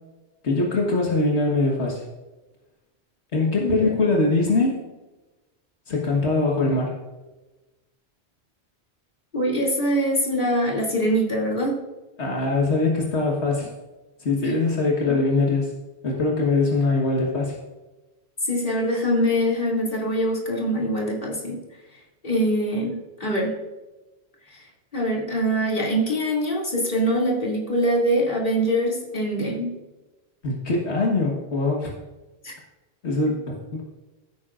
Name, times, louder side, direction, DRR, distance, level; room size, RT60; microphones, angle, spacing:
voice 1, 0.4-2.1 3.3-4.8 5.9-7.0 12.2-13.8 14.2-15.7 16.0-17.6 30.4-31.9 33.0-33.8, left 3 dB, 80° left, -2 dB, 1.8 m, -22 dB
voice 2, 3.6-3.9 9.3-11.8 14.4-14.5 15.1-15.2 18.4-21.6 22.2-23.6 24.5-24.6 24.9-29.7 32.4-32.5, equal, 45° left, -3 dB, 2.9 m, -23 dB
15.5 x 9.2 x 2.5 m, 1.1 s
omnidirectional pair, 1.1 m